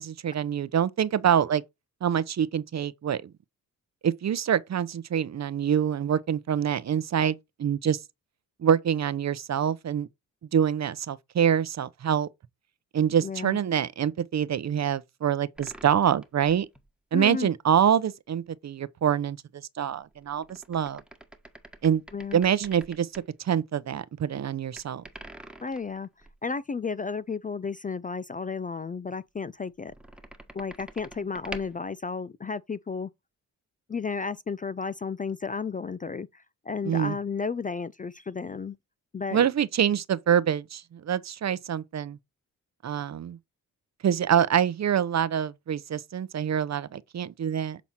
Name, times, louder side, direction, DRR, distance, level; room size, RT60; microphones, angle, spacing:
voice 1, 0.0-1.6 2.0-3.3 4.0-8.0 8.6-10.1 10.5-12.3 12.9-16.7 17.1-19.4 19.8-21.0 21.8-22.0 22.3-25.0 36.9-37.2 39.3-42.2 42.8-43.4 44.0-47.8, right 9 dB, 45° right, 0.7 m, -25 dB
voice 2, 13.2-13.6 17.1-17.5 22.1-22.4 25.6-26.1 26.4-29.9 30.5-33.1 33.9-38.8 39.1-39.5, left 5 dB, 25° left, 0.4 m, -33 dB
sound 1, 15.6-16.9 20.1-23.3 24.8-26.4 29.9-31.8, right 1 dB, 5° right, 1.4 m, -46 dB
7.4 x 4.1 x 4.3 m
supercardioid pair, 55°, 37 cm